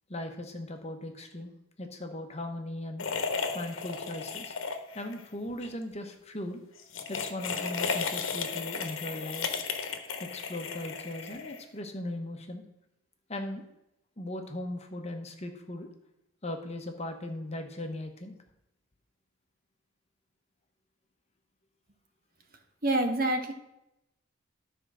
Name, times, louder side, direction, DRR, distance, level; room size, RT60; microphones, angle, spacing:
voice 1, 0.1-3.1 3.5-4.5 4.9-6.6 7.1-9.5 10.2-12.6 13.3-13.6 14.2-15.9 16.4-18.4, left 1 dB, 30° left, 5 dB, 1.0 m, -38 dB
sound 1, 3.0-5.2 5.5-5.7 6.8-11.8, left 5 dB, 70° left, 1.1 m, -34 dB
voice 2, 22.8-23.5, right 1 dB, 45° right, 5 dB, 1.1 m, -26 dB
11.5 x 4.5 x 6.2 m, 0.85 s
head